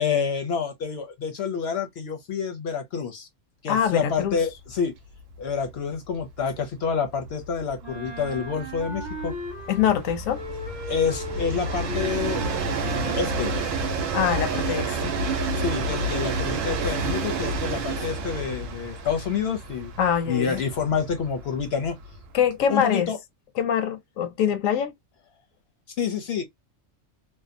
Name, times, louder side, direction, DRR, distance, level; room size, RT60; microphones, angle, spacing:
voice 1, 0.0-3.3 3.6-4.9 5.4-9.3 10.9-12.4 12.8-13.5 15.6-19.9 20.3-22.0 22.7-23.2 26.0-26.4, left 6 dB, 65° left, 0.7 m, -28 dB
voice 2, 3.7-4.4 9.7-10.4 14.1-15.2 20.0-20.6 22.3-23.1 23.6-24.9, left 8 dB, 90° left, 1.0 m, -24 dB
Train, 4.2-4.3 4.7-4.8 5.1-22.5, right 3 dB, 80° right, 1.0 m, -30 dB
Wind instrument woodwind instrument, 7.8-10.0 10.3-13.4, right 1 dB, 20° right, 1.0 m, -37 dB
2.7 x 2.0 x 2.5 m
omnidirectional pair, 1.3 m